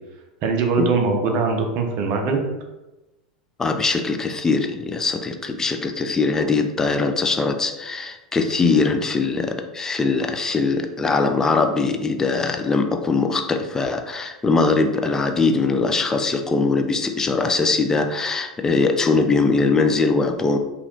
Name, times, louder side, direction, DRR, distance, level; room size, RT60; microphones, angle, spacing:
voice 1, 0.4-2.4, right 4 dB, 45° right, 3 dB, 0.5 m, -21 dB
voice 2, 3.6-20.6, left 3 dB, 15° left, 6 dB, 0.3 m, -21 dB
2.9 x 2.4 x 3.0 m, 1.0 s
figure-of-eight pair, 85°, 4 cm